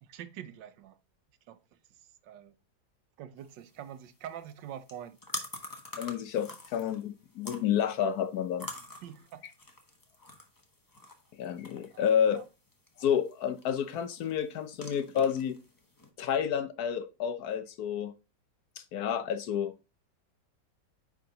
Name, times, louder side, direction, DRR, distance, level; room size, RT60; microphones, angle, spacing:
voice 1, 0.0-1.0 1.5-1.6 2.2-2.5 3.2-5.2 9.0-9.5 11.9-12.4, right 10 dB, 85° right, 1.4 m, -45 dB
sound 1, 3.4-16.1, left 2 dB, 15° left, 0.9 m, -47 dB
voice 2, 6.0-8.7 11.4-12.4 13.0-15.6 16.2-18.1 18.8-19.7, left 8 dB, 65° left, 1.1 m, -30 dB
9.5 x 3.8 x 3.9 m
omnidirectional pair, 1.9 m